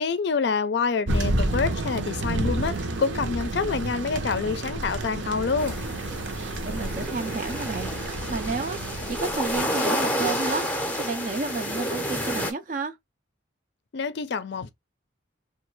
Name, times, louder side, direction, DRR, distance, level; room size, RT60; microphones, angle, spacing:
voice 1, 0.0-5.8 13.9-14.7, left 5 dB, 60° left, 0.4 m, -27 dB
Thunder, 1.1-9.6, right 1 dB, 70° right, 0.7 m, -30 dB
sound 1, 5.6-12.5, equal, 10° left, 0.6 m, -30 dB
voice 2, 6.6-7.9 8.3-13.0, right 4 dB, 40° right, 0.4 m, -31 dB
3.1 x 2.3 x 3.1 m
head